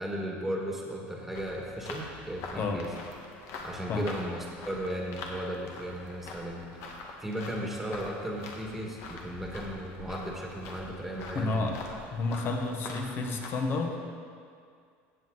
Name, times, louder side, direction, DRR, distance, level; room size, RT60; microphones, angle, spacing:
voice 1, 0.0-2.9 3.6-6.8 7.2-11.7, equal, 5° right, -1 dB, 1.8 m, -36 dB
sound 1, 1.3-13.5, left 3 dB, 60° left, 1.7 m, -44 dB
voice 2, 11.3-11.8 12.1-14.0, left 3 dB, 40° left, 3 dB, 1.4 m, -30 dB
15.5 x 7.7 x 4.0 m, 2.3 s
cardioid pair, 135°, 6 cm